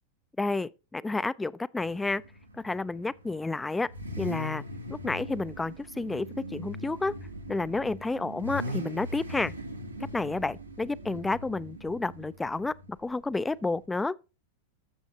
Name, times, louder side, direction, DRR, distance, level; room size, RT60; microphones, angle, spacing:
voice 1, 0.4-2.2 2.6-3.9 4.2-4.6 4.9-7.1 7.5-9.5 10.1-14.2, left 3 dB, 10° left, 0.4 m, -30 dB
Car / Idling / Accelerating revving vroom, 1.8-13.9, equal, 90° right, 1.6 m, -40 dB
13.5 x 7.1 x 2.8 m
figure-of-eight pair, 90°, 0 cm